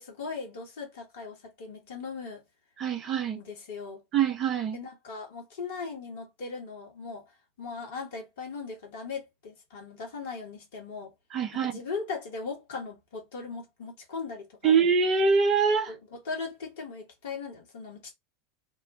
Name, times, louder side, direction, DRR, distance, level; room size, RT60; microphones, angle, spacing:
voice 1, 0.0-2.4 3.4-4.0 4.7-11.1 11.5-14.7 15.9-18.1, left 4 dB, 65° left, 1.3 m, -39 dB
voice 2, 2.8-3.4 4.1-4.8 11.3-11.7 14.6-15.9, right 5 dB, 35° right, 0.8 m, -24 dB
3.0 x 2.1 x 2.6 m
figure-of-eight pair, 80°, 0 cm